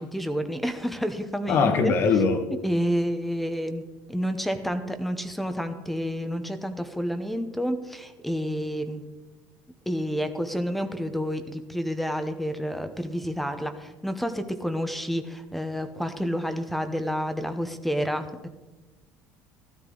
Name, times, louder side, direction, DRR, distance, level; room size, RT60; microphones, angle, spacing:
voice 1, 0.0-1.9 2.6-3.8 4.1-9.0 9.9-18.5, equal, ahead, 0.9 m, -29 dB
voice 2, 1.5-2.5, left 5 dB, 45° left, 1.6 m, -21 dB
14.5 x 13.0 x 3.9 m
cardioid pair, 150°, 6 cm